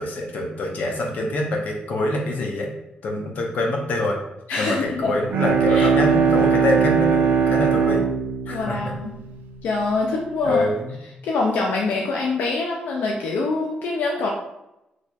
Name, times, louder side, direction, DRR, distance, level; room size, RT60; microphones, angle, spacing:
voice 1, 0.0-2.7 3.0-4.2 4.6-8.0 8.5-8.9 10.4-10.9, left 2 dB, 60° left, 0 dB, 0.8 m, -25 dB
voice 2, 4.5-5.1 5.7-5.9 8.5-9.1 9.6-10.6 11.2-14.3, left 3 dB, 85° left, -1 dB, 0.5 m, -24 dB
Bowed string instrument, 5.1-9.8, right 6 dB, 75° right, 0.4 m, -20 dB
4.1 x 3.1 x 2.3 m, 0.89 s
cardioid pair, 135°, 3 cm